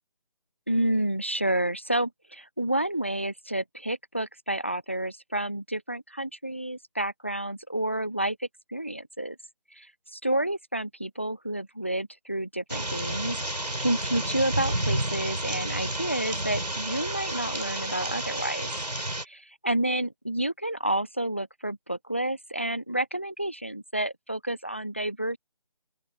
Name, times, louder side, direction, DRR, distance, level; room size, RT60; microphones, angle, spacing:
voice 1, 0.7-9.4 9.7-18.7 19.6-25.4, right 1 dB, 20° left, 0.4 m, -30 dB
sound 1, 12.7-19.2, right 1 dB, 80° right, 3.2 m, -31 dB
open air
figure-of-eight pair, 155°, 21 cm